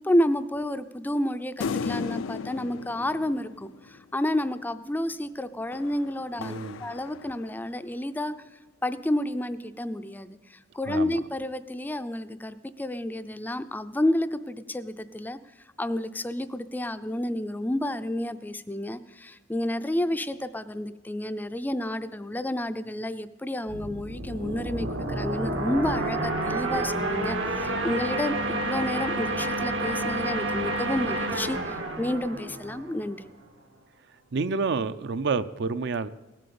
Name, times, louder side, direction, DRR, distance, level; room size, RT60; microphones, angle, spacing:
voice 1, 0.0-8.4 8.8-15.4 15.8-33.3, left 1 dB, 10° left, 12 dB, 0.4 m, -30 dB
sound 1, 1.6-4.3 5.7-7.8, left 5 dB, 90° left, 0.4 m, -36 dB
voice 2, 6.4-6.8 10.9-11.2 34.3-36.1, right 4 dB, 60° right, 13 dB, 0.5 m, -29 dB
loopable usermade engine, 23.7-33.2, right 2 dB, 85° right, 1.9 m, -29 dB
17.5 x 7.6 x 6.9 m, 1.1 s
head